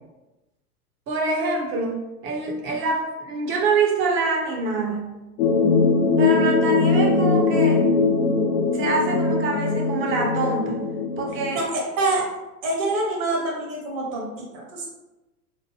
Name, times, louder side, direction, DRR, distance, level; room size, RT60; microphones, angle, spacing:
voice 1, 1.1-2.0 2.2-5.1 6.2-7.8 8.7-10.9 11.2-11.6, right 3 dB, 25° right, 0 dB, 0.6 m, -25 dB
sound 1, 5.4-11.6, left 4 dB, 45° left, 0.6 m, -21 dB
voice 2, 11.5-12.3 12.6-14.9, right 2 dB, 55° right, -1 dB, 1.0 m, -26 dB
2.9 x 2.0 x 3.1 m, 1.0 s
hypercardioid pair, 100°, 48 cm